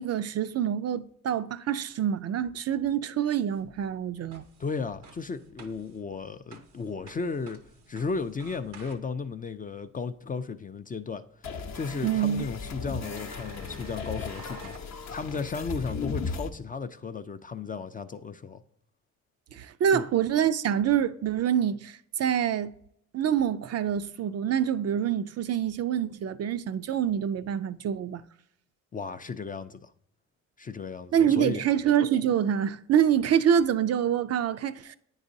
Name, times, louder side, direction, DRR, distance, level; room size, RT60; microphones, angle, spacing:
voice 1, 0.0-4.4 12.0-12.4 19.5-22.7 23.1-28.2 31.1-35.0, right 9 dB, 45° right, 0.4 m, -26 dB
sound 1, 3.5-9.4 11.6-11.7 12.3-12.4 13.0-14.9, right 4 dB, 90° right, 0.8 m, -52 dB
voice 2, 4.6-7.6 7.9-18.6 19.9-20.1 28.9-29.9 30.6-31.6, left 4 dB, 25° left, 0.4 m, -35 dB
sound 2, 11.4-16.5, left 4 dB, 50° left, 0.8 m, -36 dB
9.4 x 4.0 x 2.6 m
supercardioid pair, 60°, 35 cm